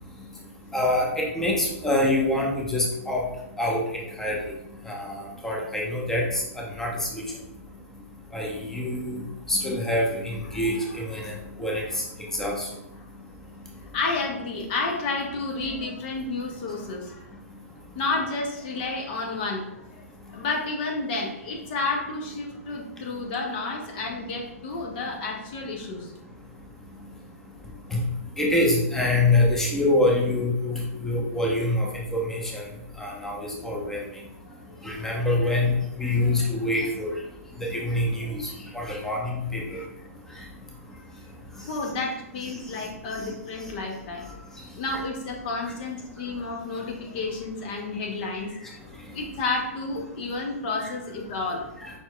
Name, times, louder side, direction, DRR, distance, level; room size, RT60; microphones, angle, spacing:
voice 1, 0.7-1.1 1.4-3.2 3.6-3.8 4.2-4.4 4.9-6.4 6.8-6.9 7.1-7.2 8.3-9.2 9.5-11.3 11.6-11.8 12.3-12.7 27.9-28.0 28.4-32.6 33.0-34.0 34.8-35.7 36.0-37.1 37.7-38.4 38.7-39.8 44.9-45.0 51.8-51.9, left 1 dB, 5° left, -3 dB, 0.9 m, -25 dB
voice 2, 10.5-10.9 11.2-11.4 13.9-17.3 17.9-26.1 34.7-35.1 36.2-36.3 39.7-39.9 40.9-41.1 41.7-44.4 44.8-48.8 49.1-51.7, left 3 dB, 40° left, 1 dB, 0.8 m, -31 dB
5.2 x 4.4 x 2.3 m, 0.89 s
figure-of-eight pair, 115°, 8 cm